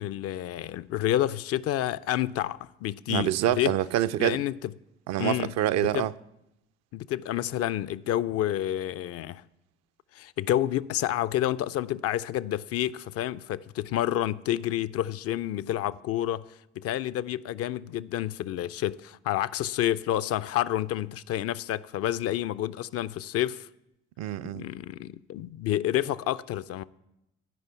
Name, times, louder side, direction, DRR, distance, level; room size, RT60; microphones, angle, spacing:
voice 1, 0.0-3.7 4.2-4.7 5.2-5.5 5.9-6.1 6.9-9.4 10.1-16.5 16.8-23.7 24.5-26.8, left 12 dB, 50° left, 0.4 m, -29 dB
voice 2, 3.1-4.4 5.1-6.1 24.2-24.7, right 12 dB, 55° right, 0.5 m, -26 dB
12.0 x 5.5 x 8.2 m
figure-of-eight pair, 45°, 33 cm